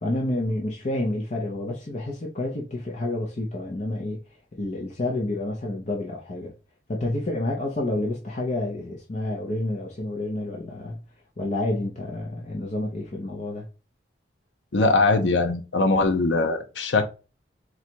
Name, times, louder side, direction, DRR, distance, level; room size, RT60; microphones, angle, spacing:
voice 1, 0.0-4.2 4.5-6.5 6.9-11.0 11.4-13.7, left 2 dB, 40° left, 0.7 m, -29 dB
voice 2, 14.7-17.1, left 3 dB, 90° left, 0.7 m, -21 dB
4.0 x 2.3 x 4.5 m
head